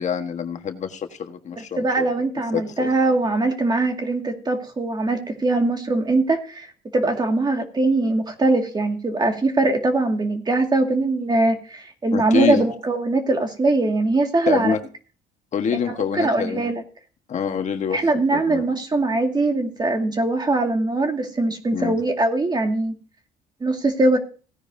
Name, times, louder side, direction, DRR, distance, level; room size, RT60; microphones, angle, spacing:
voice 1, 0.0-2.0 2.5-2.9 12.1-12.6 14.5-14.8 15.5-16.7 17.3-18.0 18.3-18.6 21.7-22.0, left 7 dB, 45° left, 6 dB, 1.4 m, -26 dB
voice 2, 1.8-6.7 6.9-14.8 15.7-16.8 17.9-23.0 23.6-24.2, right 2 dB, 25° right, 4 dB, 2.1 m, -21 dB
17.0 x 9.9 x 2.7 m, 0.37 s
cardioid pair, 110°, 17 cm